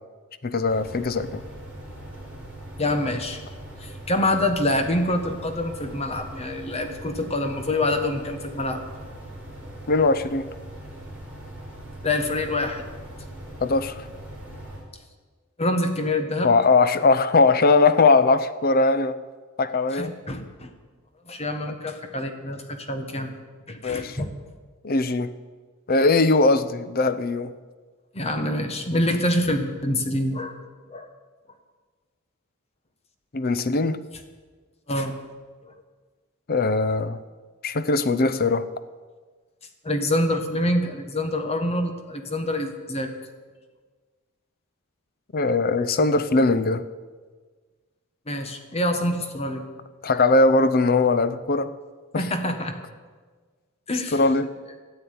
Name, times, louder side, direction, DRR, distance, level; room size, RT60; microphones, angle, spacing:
voice 1, 0.4-1.4 9.9-10.5 13.6-14.0 16.4-19.2 19.6-20.1 23.8-24.2 24.8-25.3 25.9-27.5 33.3-34.0 36.5-37.2 37.6-38.7 45.3-46.9 50.0-51.7 52.1-52.3 54.1-54.5, left 3 dB, 45° left, 14 dB, 0.6 m, -20 dB
sound 1, 0.6-14.8, right 1 dB, 5° right, 4.8 m, -40 dB
voice 2, 2.8-3.4 3.8-8.8 12.0-12.8 15.6-16.5 19.9-20.7 21.3-23.3 23.7-24.3 28.1-30.6 30.9-31.1 34.9-35.1 35.6-35.7 39.8-43.1 48.3-49.7 52.1-52.8 53.9-54.2, left 1 dB, 30° left, 6 dB, 1.3 m, -26 dB
13.0 x 8.5 x 9.4 m, 1.4 s
head